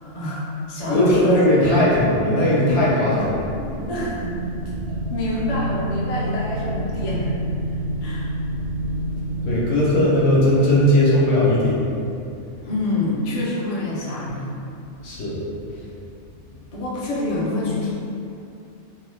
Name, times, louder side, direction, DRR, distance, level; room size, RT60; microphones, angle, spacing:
voice 1, 0.0-1.4 1.6-1.9 3.1-3.3 3.9-4.1 4.7-7.3 8.0-8.3 12.6-14.6 16.7-17.9, left 1 dB, 50° left, -6 dB, 0.4 m, -27 dB
voice 2, 0.9-3.4 9.4-11.9 15.0-15.6, left 1 dB, 65° left, -6 dB, 0.9 m, -18 dB
sound 1, 3.1-11.3, right 1 dB, 60° right, 0.6 m, -29 dB
2.8 x 2.2 x 3.1 m, 2.6 s
omnidirectional pair, 1.2 m